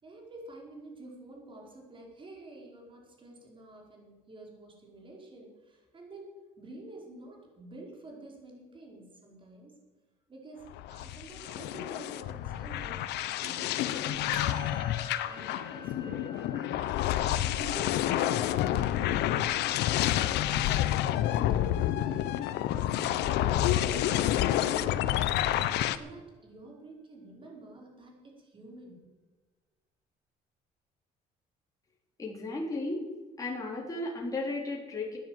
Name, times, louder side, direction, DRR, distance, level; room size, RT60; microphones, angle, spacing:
voice 1, 0.0-9.8 10.3-14.9 15.2-17.0 17.4-19.0 19.3-20.9 21.4-25.4 25.9-29.1, right 2 dB, 30° right, -1 dB, 4.8 m, -49 dB
sound 1, 10.7-26.0, left 12 dB, 80° left, 0.8 m, -29 dB
Musical instrument, 14.3-23.9, left 1 dB, 60° right, 3.0 m, -50 dB
voice 2, 32.2-33.0 33.4-35.2, left 2 dB, 20° left, -3 dB, 3.6 m, -34 dB
13.5 x 9.9 x 7.9 m, 1.2 s
cardioid pair, 110°, 17 cm